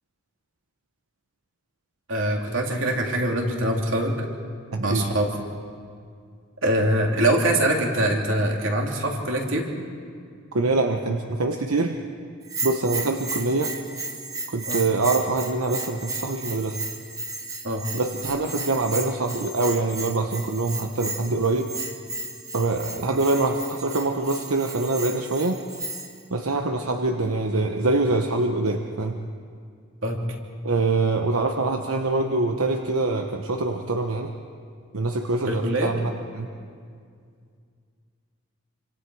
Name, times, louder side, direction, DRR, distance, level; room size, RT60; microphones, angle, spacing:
voice 1, 2.1-4.3 4.8-5.3 6.6-9.7 14.7-14.8 17.6-17.8 30.0-30.2 35.5-35.9, right 1 dB, 65° right, 0 dB, 3.0 m, -23 dB
voice 2, 4.7-5.0 10.5-12.0 12.6-13.7 14.5-16.8 17.9-21.7 22.5-25.6 26.3-29.2 30.6-34.3 34.9-36.5, right 3 dB, 85° right, 4 dB, 1.1 m, -24 dB
Bell, 12.4-26.2, right 3 dB, 15° right, 1.2 m, -34 dB
27.5 x 25.5 x 4.8 m, 2.2 s
head